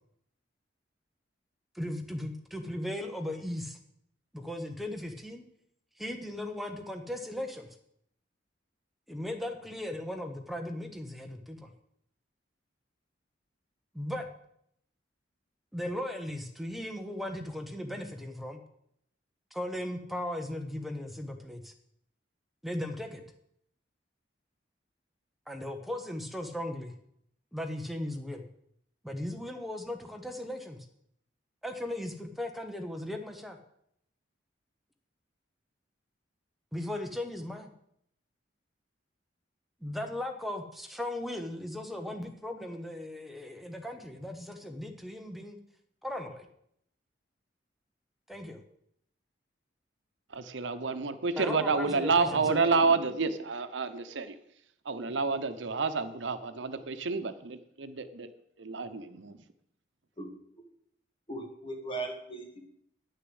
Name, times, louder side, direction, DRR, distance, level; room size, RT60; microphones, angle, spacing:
voice 1, 1.7-3.8 4.3-5.4 6.0-7.7 9.1-11.7 13.9-14.3 15.7-18.6 19.5-21.7 22.6-23.2 25.5-26.9 27.5-28.4 29.0-30.8 31.6-33.6 36.7-37.7 39.8-45.6 46.0-46.5 48.3-48.6 51.4-52.6, left 1 dB, ahead, 4 dB, 1.0 m, -37 dB
voice 2, 50.3-54.4 54.9-58.3 58.6-59.4, right 4 dB, 85° right, 10 dB, 0.8 m, -29 dB
voice 3, 52.3-52.7 60.2-60.3 61.3-62.7, right 2 dB, 30° left, 2 dB, 2.0 m, -38 dB
9.9 x 6.8 x 7.8 m, 0.71 s
head